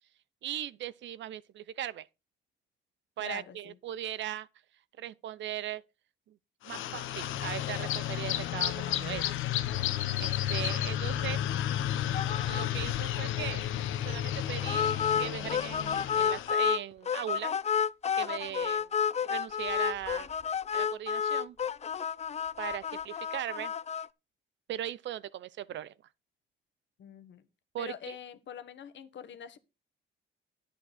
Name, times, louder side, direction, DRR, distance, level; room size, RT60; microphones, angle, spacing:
voice 1, 0.4-2.1 3.2-4.5 5.0-5.8 6.3-6.4 6.6-9.3 10.2-11.4 12.4-13.7 14.0-14.9 15.2-17.5 18.1-18.9 19.2-20.3 20.7-21.6 22.6-23.7 24.7-25.9 27.7-28.2, right 11 dB, 70° right, 0.7 m, -38 dB
voice 2, 3.2-3.8 27.0-27.4 27.8-29.6, left 9 dB, 65° left, 1.4 m, -44 dB
sound 1, 6.6-16.5, left 12 dB, 90° left, 1.1 m, -32 dB
sound 2, 12.1-12.7 12.9-13.1 13.4-13.5 14.7-16.8 17.1-24.1, left 7 dB, 35° left, 0.5 m, -30 dB
10.0 x 8.5 x 4.3 m
cardioid pair, 90°, 20 cm